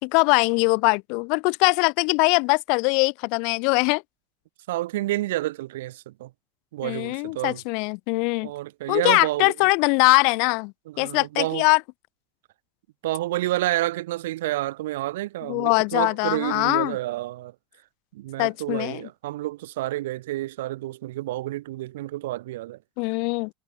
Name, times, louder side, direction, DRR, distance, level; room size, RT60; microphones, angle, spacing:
voice 1, 0.0-4.0 6.8-8.5 8.9-11.8 15.4-17.0 18.4-19.1 23.0-23.5, left 35 dB, 65° left, 1.1 m, -22 dB
voice 2, 4.7-6.3 6.7-7.6 8.4-9.5 10.9-11.6 13.0-17.5 18.1-22.8, right 16 dB, 85° right, 1.5 m, -29 dB
supercardioid pair, 105°, 0 cm